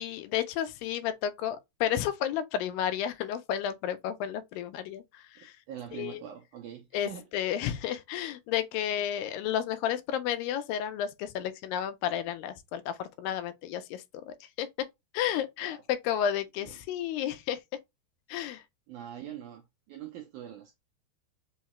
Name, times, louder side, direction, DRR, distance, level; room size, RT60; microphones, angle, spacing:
voice 1, 0.0-5.0 5.3-5.5 5.9-6.2 6.9-14.9 15.1-17.6 18.3-18.6, left 10 dB, 85° left, 2.2 m, -32 dB
voice 2, 5.4-7.3 15.6-15.8 16.6-16.8 18.9-20.8, right 10 dB, 85° right, 1.7 m, -44 dB
5.5 x 2.2 x 2.9 m
omnidirectional pair, 4.1 m